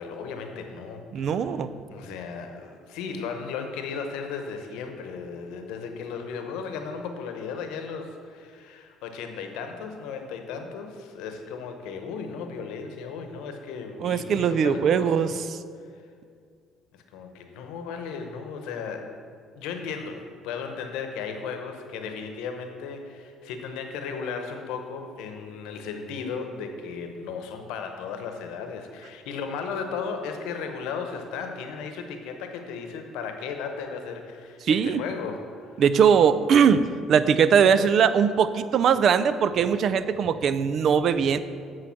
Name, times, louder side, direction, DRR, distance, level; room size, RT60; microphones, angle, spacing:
voice 1, 0.0-1.6 1.9-15.3 15.9-16.0 16.9-19.1 19.5-35.8, left 5 dB, 80° left, 5 dB, 0.9 m, -35 dB
voice 2, 1.1-1.7 14.0-15.3 34.7-35.0 35.8-41.4, right 7 dB, 60° right, 13 dB, 0.4 m, -20 dB
8.6 x 4.7 x 5.8 m, 2.2 s
supercardioid pair, 70°, 0 cm